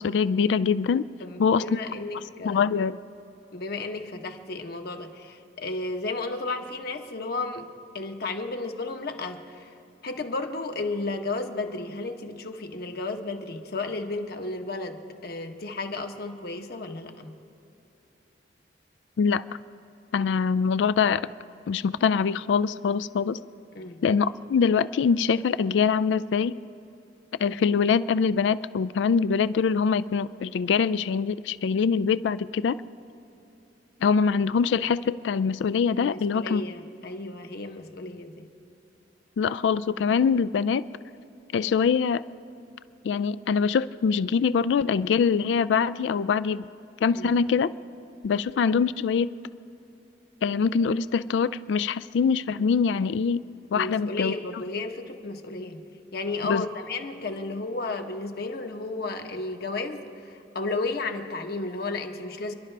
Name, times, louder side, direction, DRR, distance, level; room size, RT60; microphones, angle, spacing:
voice 1, 0.0-1.0 1.4-1.6 2.4-3.0 19.2-19.4 20.1-21.2 21.7-23.4 24.0-26.5 27.4-32.8 34.0-36.6 39.4-40.8 41.5-42.2 43.0-46.6 47.0-47.7 48.2-49.3 50.4-53.4 53.7-54.3 56.4-56.6, left 6 dB, 80° left, 15 dB, 0.3 m, -23 dB
voice 2, 1.2-2.6 3.5-7.7 7.9-9.7 10.0-17.3 23.7-24.0 36.0-38.5 47.1-47.3 53.7-55.8 56.1-62.5, left 3 dB, 60° left, 5 dB, 1.1 m, -33 dB
29.5 x 11.5 x 3.3 m, 2.8 s
head